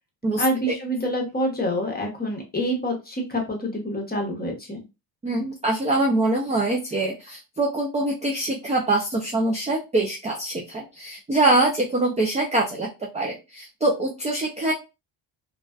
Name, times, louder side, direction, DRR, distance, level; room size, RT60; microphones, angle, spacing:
voice 1, 0.4-4.8, equal, 20° left, 1 dB, 0.9 m, -27 dB
voice 2, 5.2-12.9 13.1-14.7, right 2 dB, 15° right, -1 dB, 0.4 m, -24 dB
2.3 x 2.3 x 2.3 m, 0.27 s
cardioid pair, 95°, 49 cm